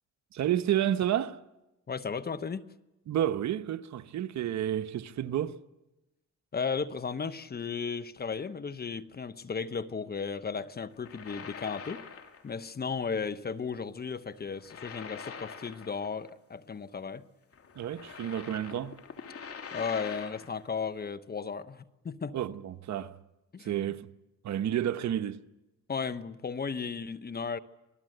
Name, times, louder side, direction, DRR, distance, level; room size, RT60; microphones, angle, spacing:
voice 1, 0.3-1.4 3.1-5.6 17.7-19.0 22.3-23.2 23.6-24.1 24.4-25.4, right 11 dB, 65° right, 1.0 m, -30 dB
voice 2, 1.9-2.7 6.5-12.0 12.4-17.2 19.7-22.3 23.5-23.9 25.9-27.6, left 5 dB, 30° left, 1.0 m, -35 dB
sound 1, 10.9-12.5 12.8-13.1 14.4-16.3 16.5-16.6 17.5-20.6, left 6 dB, 50° left, 2.9 m, -44 dB
26.5 x 19.0 x 7.9 m
cardioid pair, 90°, 30 cm